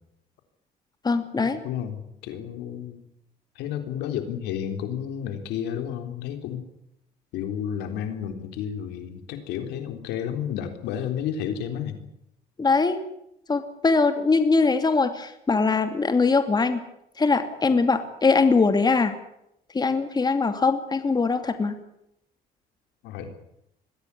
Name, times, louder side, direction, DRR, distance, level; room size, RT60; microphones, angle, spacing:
voice 1, 1.0-1.6 12.6-13.0 13.5-16.8 17.2-19.1 19.7-21.8, left 4 dB, 25° left, 8 dB, 2.6 m, -22 dB
voice 2, 1.6-3.0 3.6-6.6 7.3-12.0 23.0-23.3, left 9 dB, 90° left, 7 dB, 3.7 m, -31 dB
22.5 x 16.0 x 9.8 m, 0.79 s
cardioid pair, 110°, 17 cm